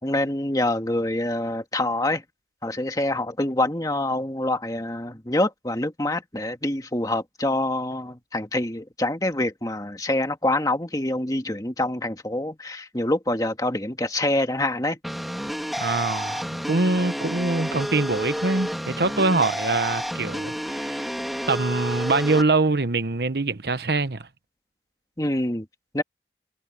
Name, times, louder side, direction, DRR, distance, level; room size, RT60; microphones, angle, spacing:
voice 1, 0.0-2.2 2.6-15.0 25.2-25.7 25.9-26.0, left 1 dB, 20° left, 1.8 m, -26 dB
sound 1, 15.0-22.4, equal, ahead, 2.4 m, -30 dB
voice 2, 15.8-21.1 21.5-24.3, right 3 dB, 65° right, 1.1 m, -24 dB
head